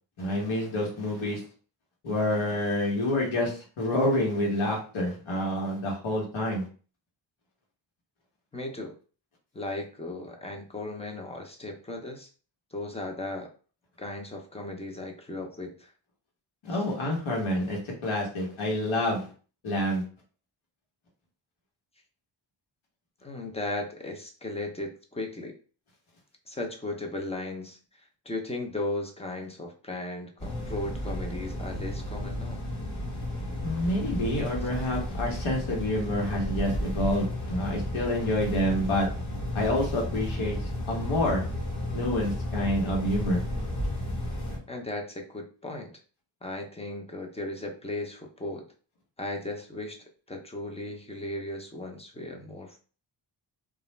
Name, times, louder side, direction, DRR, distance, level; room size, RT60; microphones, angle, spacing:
voice 1, 0.2-1.4 2.0-6.6 16.6-19.3 19.6-20.0 33.6-39.1 39.5-40.6 40.9-41.4 41.9-43.4, left 1 dB, 85° left, -2 dB, 1.1 m, -28 dB
voice 2, 8.5-9.0 9.5-12.3 12.7-13.5 14.0-15.9 16.7-16.8 23.2-25.5 26.5-32.6 44.7-45.9 46.4-48.7 49.2-50.0 50.3-52.8, left 2 dB, 15° left, 2 dB, 0.5 m, -36 dB
sound 1, 30.4-44.6, left 1 dB, 40° left, 1.2 m, -33 dB
2.4 x 2.0 x 3.0 m, 0.39 s
wide cardioid pair, 100°, 47 cm